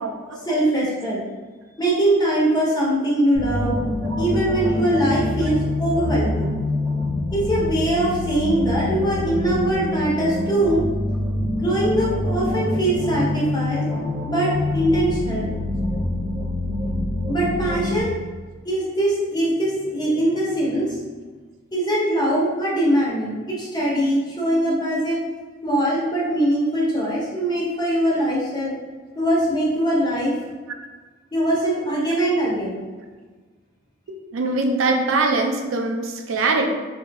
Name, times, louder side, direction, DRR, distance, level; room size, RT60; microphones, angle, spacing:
voice 1, 0.5-1.2 1.8-3.8 4.2-6.5 7.3-10.8 11.6-13.8 14.2-15.5 17.3-18.2 18.6-21.0 21.7-25.2 25.6-28.7 29.2-30.3 31.3-32.7, right 1 dB, 20° left, -6 dB, 0.7 m, -22 dB
sound 1, 3.3-18.0, left 2 dB, 15° right, 0.7 m, -25 dB
voice 2, 34.3-36.7, right 3 dB, 75° right, 3 dB, 0.4 m, -22 dB
3.0 x 2.6 x 2.2 m, 1.4 s
head